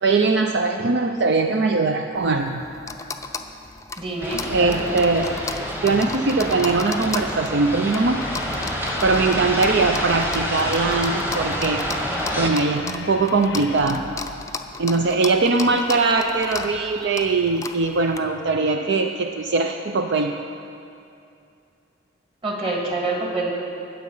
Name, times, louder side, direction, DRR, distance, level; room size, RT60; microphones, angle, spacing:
voice 1, 0.0-2.6 4.5-5.3 5.8-8.2 9.0-11.8 12.3-14.1 14.8-20.3, right 3 dB, 60° right, 4 dB, 0.5 m, -21 dB
sound 1, 2.2-18.2, left 4 dB, 15° left, 0.5 m, -36 dB
voice 2, 4.0-5.3 22.4-23.5, right 2 dB, 30° right, -2 dB, 2.1 m, -27 dB
sound 2, 4.2-12.5, equal, 10° right, 1.2 m, -28 dB
sound 3, 7.9-13.8, left 6 dB, 60° left, 0.6 m, -38 dB
19.0 x 7.5 x 5.5 m, 2.6 s
head